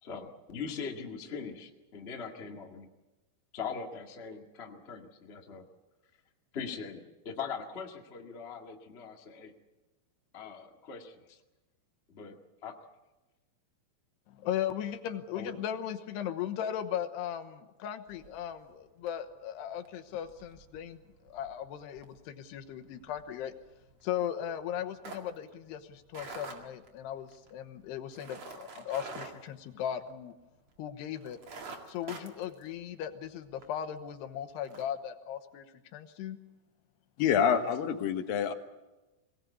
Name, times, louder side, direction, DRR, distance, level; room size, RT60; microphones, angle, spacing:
voice 1, 0.0-2.9 3.5-5.6 6.5-9.5 10.3-11.4 12.1-12.7 15.3-15.5, left 6 dB, 45° left, 1 dB, 0.8 m, -41 dB
voice 2, 14.3-21.0 21.3-23.5 24.0-30.3 30.8-31.4 31.9-35.7 35.9-36.4, left 10 dB, 80° left, 8 dB, 3.2 m, -37 dB
sound 1, 18.1-18.7 19.0-19.3 19.7-30.4 30.8-30.9 31.2-33.7 34.1-34.2 34.6-34.8, right 4 dB, 40° right, 2.3 m, -48 dB
voice 3, 37.2-38.5, left 8 dB, 65° left, 6 dB, 2.7 m, -27 dB
23.0 x 18.5 x 8.4 m, 1.1 s
omnidirectional pair, 4.8 m